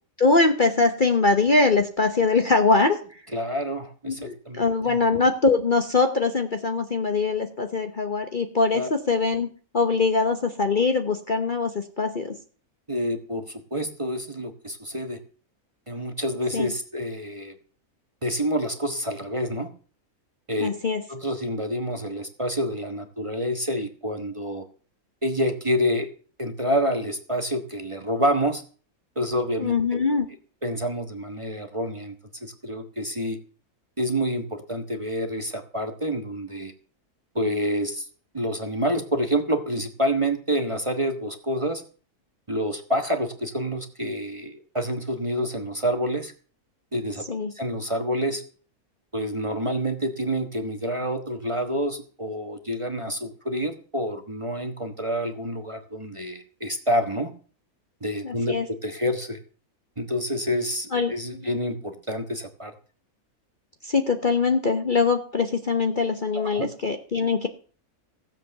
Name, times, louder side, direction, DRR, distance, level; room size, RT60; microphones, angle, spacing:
voice 1, 0.2-3.0 4.1-9.5 9.7-12.3 16.5-16.7 20.6-21.0 29.6-30.3 47.3-47.5 58.2-58.6 60.9-61.1 63.8-67.5, left 4 dB, 35° left, 6 dB, 1.0 m, -22 dB
voice 2, 3.3-5.0 8.7-8.9 12.9-15.2 15.9-17.5 18.2-19.7 20.5-20.7 21.1-24.6 25.2-26.1 26.4-28.6 29.2-30.0 30.6-32.1 32.4-33.4 34.0-36.7 37.3-38.1 38.3-41.8 42.5-46.3 46.9-47.3 47.5-48.4 49.1-57.3 58.0-59.4 60.0-62.7 66.3-66.7, equal, 20° right, 5 dB, 1.2 m, -28 dB
16.0 x 7.6 x 6.8 m, 0.41 s
omnidirectional pair, 1.6 m